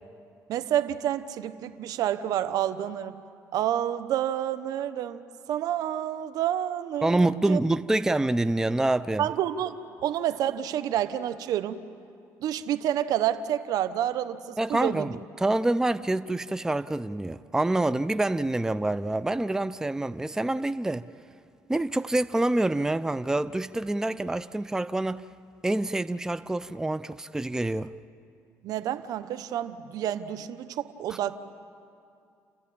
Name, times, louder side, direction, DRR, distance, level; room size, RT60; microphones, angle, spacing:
voice 1, 0.5-3.1 3.5-5.2 5.5-7.6 9.2-11.8 12.4-15.1 28.6-31.4, right 11 dB, 70° right, 1.0 m, -29 dB
voice 2, 7.0-9.3 14.6-21.0 21.7-25.2 25.6-27.9 31.1-31.2, right 2 dB, 10° right, 0.5 m, -26 dB
29.5 x 14.0 x 8.7 m
cardioid pair, 90°, 7 cm